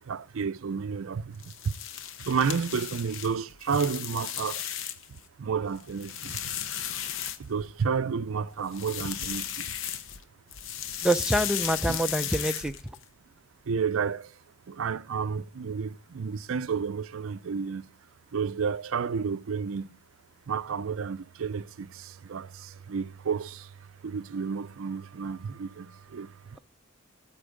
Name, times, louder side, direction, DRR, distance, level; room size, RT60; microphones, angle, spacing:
voice 1, 0.0-1.7 2.2-4.7 5.1-6.7 7.4-9.7 11.9-12.0 13.6-17.9 18.3-20.0 20.5-26.6, right 6 dB, 65° right, 0.4 m, -31 dB
sound 1, 1.3-5.2 5.6-7.8 8.6-10.2 10.5-13.0, left 9 dB, 65° left, 0.7 m, -35 dB
voice 2, 11.0-12.7, right 1 dB, 5° right, 0.4 m, -26 dB
13.0 x 4.5 x 4.9 m
head